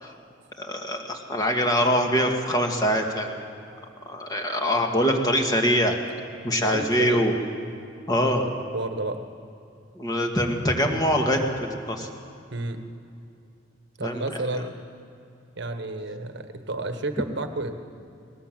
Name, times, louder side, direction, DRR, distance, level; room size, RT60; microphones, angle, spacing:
voice 1, 0.6-3.4 4.1-6.0 6.4-7.3 8.1-8.5 10.0-12.1 14.0-14.4, equal, 20° left, 2 dB, 2.0 m, -24 dB
voice 2, 6.6-7.3 8.2-9.3 12.5-12.9 14.0-14.7 15.6-17.7, right 2 dB, 65° right, 7 dB, 1.4 m, -31 dB
20.0 x 18.5 x 7.6 m, 2.6 s
head